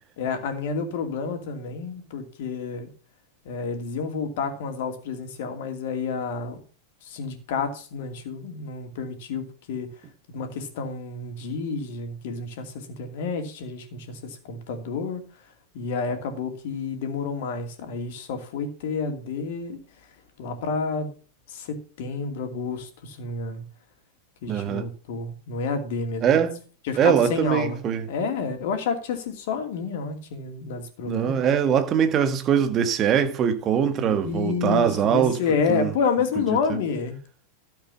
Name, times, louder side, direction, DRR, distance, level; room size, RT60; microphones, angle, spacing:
voice 1, 0.2-2.9 3.4-6.6 7.1-9.9 10.3-15.2 15.7-19.8 20.4-21.1 21.5-23.6 24.4-26.4 26.8-27.8 28.1-31.4 34.0-37.2, left 5 dB, 50° left, 2.6 m, -29 dB
voice 2, 24.5-24.9 26.2-26.6 27.0-28.1 31.1-35.4 35.7-35.9 36.5-36.8, right 8 dB, 30° right, 1.7 m, -22 dB
13.0 x 7.3 x 5.8 m
figure-of-eight pair, 90°, 0 cm